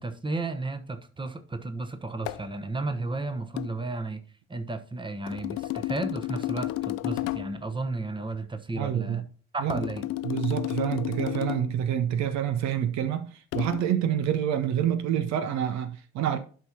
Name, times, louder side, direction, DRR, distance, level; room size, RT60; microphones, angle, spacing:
voice 1, 0.0-4.2 4.5-9.2 9.5-10.1, right 2 dB, 15° right, 1.1 m, -33 dB
sound 1, 2.3-2.5 3.6-3.8 5.3-7.6 9.7-11.8 13.5-13.8, left 17 dB, 50° left, 0.4 m, -32 dB
voice 2, 8.7-9.2 9.6-9.9 10.2-16.4, right 9 dB, 55° right, 0.8 m, -27 dB
12.0 x 5.7 x 2.9 m
figure-of-eight pair, 50°, 33 cm